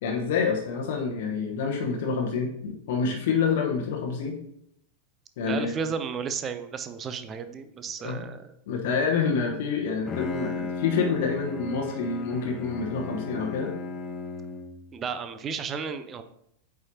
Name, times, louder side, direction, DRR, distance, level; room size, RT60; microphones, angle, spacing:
voice 1, 0.0-4.4 5.4-5.8 8.0-8.2 8.7-13.7, left 5 dB, 55° left, 1 dB, 1.0 m, -27 dB
voice 2, 5.4-8.5 14.9-16.2, right 6 dB, 25° right, 9 dB, 0.6 m, -33 dB
Bowed string instrument, 9.9-14.9, left 5 dB, 20° left, 0.8 m, -35 dB
8.4 x 4.7 x 2.8 m, 0.73 s
figure-of-eight pair, 90°, 0 cm